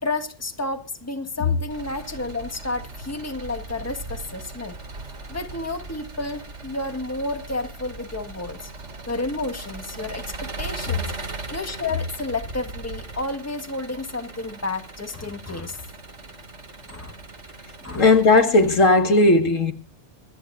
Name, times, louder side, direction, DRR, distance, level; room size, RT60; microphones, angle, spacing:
voice 1, 0.0-4.8 5.3-8.7 9.1-11.1 11.5-15.8 16.9-17.2 17.8-18.1, left 2 dB, 10° left, 1.5 m, -31 dB
Engine, 1.7-18.8, right 3 dB, 65° right, 2.6 m, -39 dB
voice 2, 17.9-19.7, left 2 dB, 80° left, 2.2 m, -16 dB
25.0 x 10.0 x 2.5 m
omnidirectional pair, 1.3 m